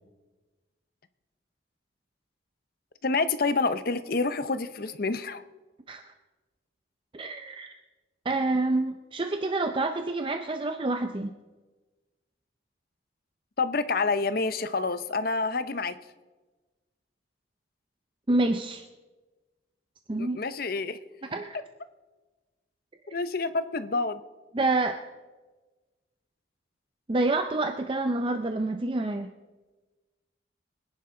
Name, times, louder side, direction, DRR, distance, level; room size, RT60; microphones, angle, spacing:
voice 1, 3.0-5.4 13.6-16.0 20.2-21.0 23.1-24.2, left 3 dB, 50° left, 12 dB, 0.7 m, -28 dB
voice 2, 7.1-7.8 8.2-11.3 18.3-18.9 20.1-20.4 21.2-21.6 24.5-25.0 27.1-29.3, right 2 dB, 25° right, 7 dB, 0.5 m, -28 dB
23.5 x 10.5 x 3.8 m, 1.3 s
head